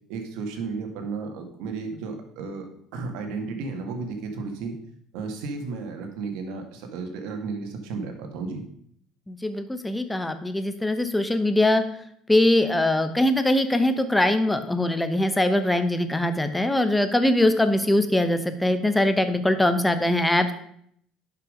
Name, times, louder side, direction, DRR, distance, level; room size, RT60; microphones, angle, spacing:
voice 1, 0.1-2.7 2.9-4.8 5.1-8.6, right 4 dB, 80° right, 4 dB, 2.1 m, -33 dB
voice 2, 9.3-11.8 12.3-20.5, left 1 dB, 5° left, 10 dB, 0.9 m, -22 dB
11.0 x 5.8 x 5.1 m, 0.68 s
cardioid pair, 140°, 0 cm